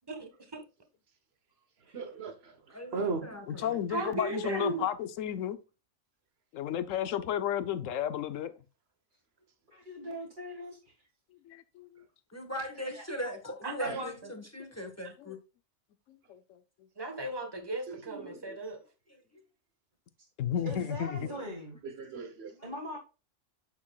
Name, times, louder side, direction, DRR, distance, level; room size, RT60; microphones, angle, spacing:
voice 1, 0.1-0.6 3.6-4.8 13.6-14.1 17.0-18.8, right 2 dB, 20° right, 1.3 m, -36 dB
voice 2, 1.9-2.3 2.9-3.4 13.9-14.0 17.9-18.6 21.8-22.5, right 4 dB, 55° right, 1.2 m, -37 dB
voice 3, 2.7-3.7 12.3-15.4 19.1-19.4 21.2-21.3 22.5-22.7, equal, 10° left, 1.3 m, -40 dB
voice 4, 3.5-5.6 6.5-8.5 11.5-11.9 14.6-14.7 15.3-15.4 16.3-16.4 20.4-21.3, left 10 dB, 80° left, 1.1 m, -32 dB
voice 5, 9.7-10.9 12.9-13.0 20.7-21.8 22.6-23.0, equal, 40° right, 2.0 m, -41 dB
8.5 x 7.1 x 2.3 m
omnidirectional pair, 1.3 m